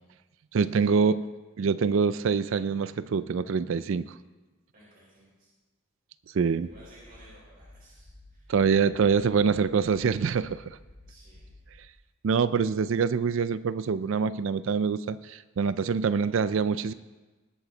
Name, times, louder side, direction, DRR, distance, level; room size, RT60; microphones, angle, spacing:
voice 1, 0.5-1.2 1.6-4.1 6.3-6.7 8.5-10.8 12.2-16.9, right 5 dB, 65° right, 15 dB, 0.4 m, -25 dB
voice 2, 4.7-5.5 6.6-8.4 11.1-11.5, right 1 dB, 45° right, -7 dB, 4.6 m, -55 dB
sound 1, 6.7-11.8, left 1 dB, 10° left, 5.3 m, -52 dB
20.0 x 9.1 x 4.0 m, 1.2 s
head